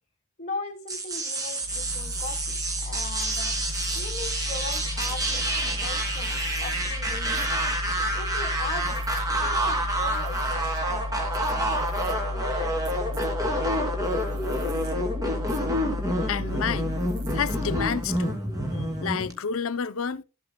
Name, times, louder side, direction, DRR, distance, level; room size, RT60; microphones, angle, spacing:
voice 1, 0.4-3.5 3.9-7.4 8.1-12.8 13.5-13.6, left 3 dB, 35° left, 1.3 m, -39 dB
sound 1, 0.9-19.3, right 1 dB, 15° right, 2.6 m, -28 dB
sound 2, 1.6-18.2, left 2 dB, 80° right, 1.4 m, -33 dB
voice 2, 16.3-16.9 17.3-18.4 18.8-20.2, left 6 dB, 80° left, 0.6 m, -30 dB
14.0 x 7.9 x 2.2 m
head